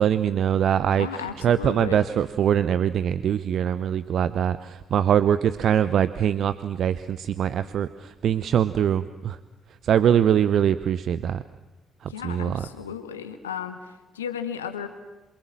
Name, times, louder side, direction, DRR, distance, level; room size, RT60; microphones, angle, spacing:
voice 1, 0.0-9.4 9.7-11.4 12.0-12.7, right 9 dB, 55° right, 14 dB, 0.8 m, -23 dB
voice 2, 1.0-2.0 12.1-14.9, left 8 dB, 85° left, 9 dB, 1.9 m, -34 dB
28.0 x 27.0 x 7.6 m, 1.1 s
figure-of-eight pair, 45°, 0 cm